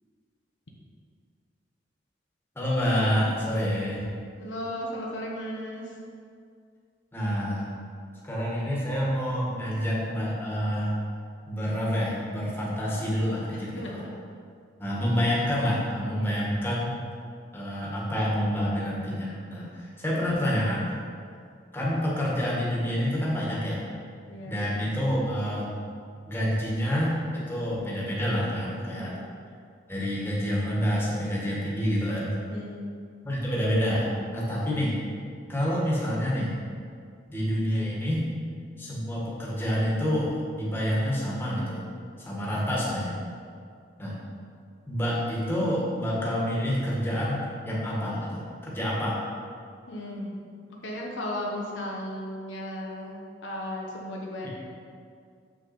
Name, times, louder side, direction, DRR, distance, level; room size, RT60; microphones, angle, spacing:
voice 1, 2.5-4.1 7.1-7.7 8.2-10.9 11.4-14.0 14.8-16.9 17.5-20.9 21.7-23.8 24.5-25.7 26.3-29.1 29.9-32.3 33.2-34.9 35.5-36.5 37.3-38.3 38.8-41.8 42.2-43.1 44.0-44.2 44.9-49.2 54.4-54.5, equal, 10° left, -6 dB, 1.6 m, -28 dB
voice 2, 4.4-5.9 13.8-14.0 16.2-16.4 24.3-24.7 28.9-29.2 32.5-32.9 49.9-50.3 50.8-53.2 53.4-54.5, left 1 dB, 75° left, -2 dB, 1.1 m, -35 dB
7.0 x 5.9 x 4.4 m, 2.3 s
head